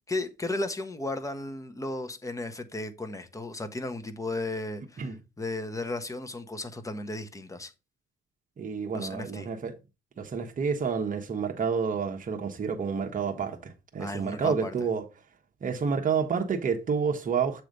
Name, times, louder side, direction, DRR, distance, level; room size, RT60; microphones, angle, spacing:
voice 1, 0.1-7.7 8.9-9.5 14.0-14.7, left 2 dB, 15° left, 1.1 m, -34 dB
voice 2, 8.6-9.7 10.2-15.0 15.6-17.6, right 6 dB, 45° right, 1.2 m, -29 dB
7.5 x 3.4 x 5.3 m
cardioid pair, 90°, 20 cm